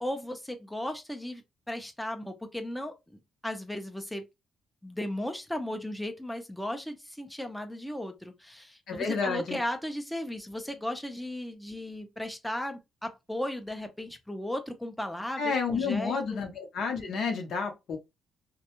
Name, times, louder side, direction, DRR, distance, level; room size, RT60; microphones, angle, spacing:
voice 1, 0.0-3.2 3.4-4.2 4.8-16.2, left 1 dB, 5° left, 0.5 m, -36 dB
voice 2, 8.9-9.6 15.4-18.0, left 5 dB, 70° left, 0.7 m, -30 dB
2.2 x 2.1 x 2.9 m
cardioid pair, 90°, 0 cm